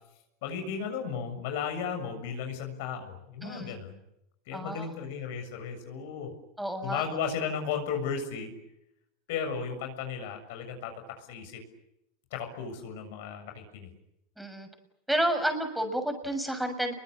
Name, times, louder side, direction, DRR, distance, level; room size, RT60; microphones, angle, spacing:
voice 1, 0.4-4.0 4.5-6.3 6.8-8.5 9.3-11.6 12.3-13.9, left 6 dB, 70° left, 5 dB, 7.1 m, -35 dB
voice 2, 3.4-3.8 4.5-4.9 6.6-7.0 14.4-14.7 15.1-16.9, right 1 dB, 5° right, 7 dB, 6.7 m, -30 dB
29.5 x 23.0 x 8.8 m, 0.84 s
hypercardioid pair, 95°, 0 cm